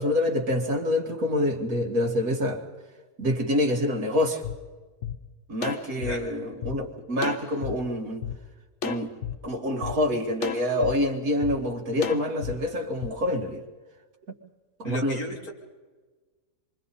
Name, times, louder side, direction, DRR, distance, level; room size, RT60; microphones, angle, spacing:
voice 1, 0.0-2.6 3.2-4.4 5.5-8.3 8.8-9.1 9.4-13.6 14.8-15.2, left 1 dB, 65° right, 2 dB, 2.5 m, -26 dB
sound 1, 4.4-4.5 5.0-5.1 5.6-6.7 7.2-7.7 8.2-8.3 8.8-9.3 9.8-9.9 10.4-10.9 11.4-11.6 12.0-12.5 13.0-13.1, left 8 dB, 55° left, 1.2 m, -32 dB
voice 2, 14.8-15.5, equal, 70° left, -1 dB, 3.9 m, -34 dB
27.5 x 24.0 x 4.2 m, 1.3 s
omnidirectional pair, 1.6 m